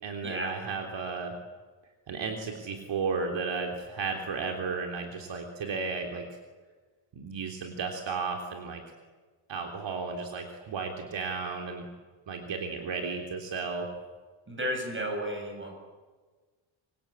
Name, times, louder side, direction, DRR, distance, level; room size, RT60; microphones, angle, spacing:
voice 1, 0.0-1.3 2.1-6.2 7.1-8.8 9.5-11.9 12.3-13.9, right 4 dB, 60° right, 3 dB, 3.3 m, -34 dB
voice 2, 14.5-15.8, equal, 25° right, 2 dB, 7.5 m, -33 dB
26.5 x 24.5 x 8.7 m, 1.4 s
cardioid pair, 160°, 50 cm